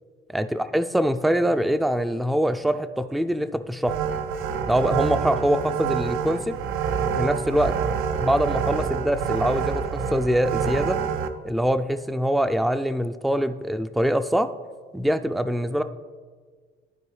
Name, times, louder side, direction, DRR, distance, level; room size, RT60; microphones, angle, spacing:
voice 1, 0.3-3.9 4.7-6.6 7.2-7.8 8.2-11.0 11.4-14.5 14.9-15.8, equal, ahead, 11 dB, 0.3 m, -24 dB
sound 1, 3.9-11.3, right 7 dB, 85° right, 0.6 m, -27 dB
14.0 x 4.7 x 3.2 m, 1.5 s
cardioid pair, 90°, 20 cm